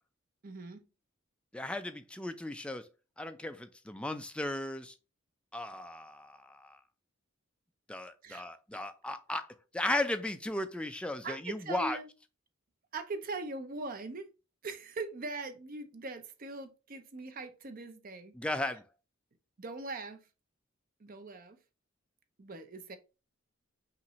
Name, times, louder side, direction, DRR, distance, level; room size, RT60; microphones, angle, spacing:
voice 1, 0.4-0.9 8.2-8.4 11.2-12.1 12.9-14.3 14.6-18.4 19.6-20.3 21.0-21.6 22.4-23.0, right 3 dB, 45° right, 0.6 m, -41 dB
voice 2, 1.5-2.9 3.2-4.9 5.5-6.8 7.9-12.0 18.3-18.8, left 1 dB, 5° left, 0.4 m, -36 dB
5.6 x 2.6 x 3.0 m
head